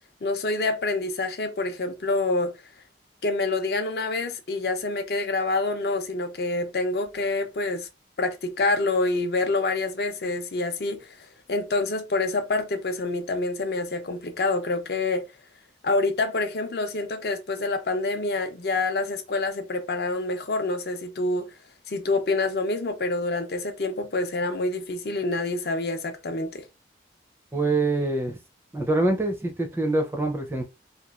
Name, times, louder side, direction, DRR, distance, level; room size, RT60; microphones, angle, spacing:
voice 1, 0.2-2.5 3.2-7.9 8.2-15.2 15.8-21.5 21.9-26.7, left 2 dB, 60° left, 0.5 m, -27 dB
voice 2, 27.5-28.4 28.7-30.6, right 2 dB, 15° right, 0.4 m, -25 dB
2.9 x 2.2 x 2.3 m
head